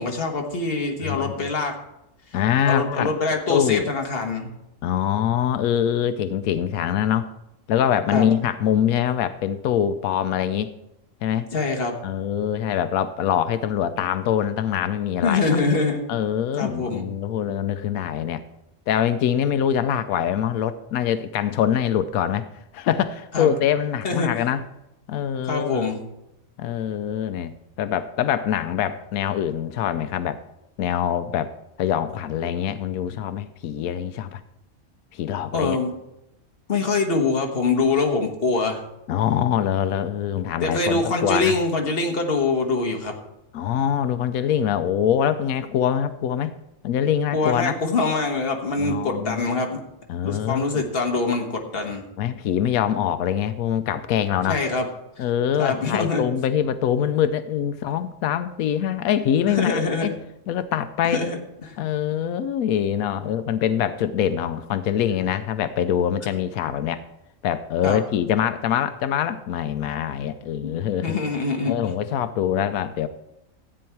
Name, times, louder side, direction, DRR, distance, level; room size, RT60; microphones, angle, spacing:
voice 1, 0.0-1.7 2.6-4.5 8.1-8.3 11.5-12.0 15.2-16.0 16.6-17.1 23.3-23.5 24.0-24.3 25.4-26.0 35.5-35.9 36.7-38.8 40.6-43.1 47.3-49.8 50.2-52.0 54.5-54.9 55.6-56.3 59.5-60.1 61.1-61.7 67.8-68.0 70.6-71.8, left 3 dB, 45° left, 3 dB, 1.6 m, -24 dB
voice 2, 1.0-1.5 2.3-3.1 3.5-3.9 4.8-7.3 7.7-10.7 11.2-11.5 12.0-15.4 16.1-18.4 18.9-22.5 22.7-24.6 25.1-25.9 26.6-27.5 27.8-30.4 30.8-31.5 31.8-34.4 35.1-35.8 39.1-41.5 43.5-46.5 46.8-47.7 48.8-49.4 50.1-50.8 52.2-54.6 55.2-60.1 60.5-61.2 61.8-67.0 67.4-71.2 71.7-73.1, left 9 dB, 90° left, 12 dB, 1.0 m, -24 dB
13.5 x 8.7 x 4.6 m, 0.89 s
omnidirectional pair, 1.4 m